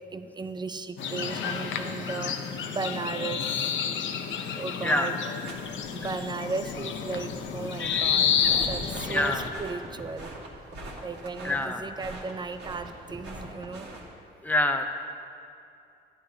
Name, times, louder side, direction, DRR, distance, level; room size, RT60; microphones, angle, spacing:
voice 1, 0.1-2.4 2.7-3.7 4.4-5.2 5.9-8.3 8.6-10.3 11.0-14.0, right 4 dB, 20° right, 10 dB, 0.5 m, -36 dB
sound 1, 1.0-9.5, left 7 dB, 70° left, 0.7 m, -30 dB
sound 2, 5.5-14.1, right 1 dB, 60° right, 2.0 m, -43 dB
voice 2, 7.8-8.1 9.1-9.5 11.4-11.8 14.4-14.9, left 1 dB, 10° left, 5 dB, 0.7 m, -26 dB
14.0 x 9.9 x 2.8 m, 2.5 s
cardioid pair, 90°, 20 cm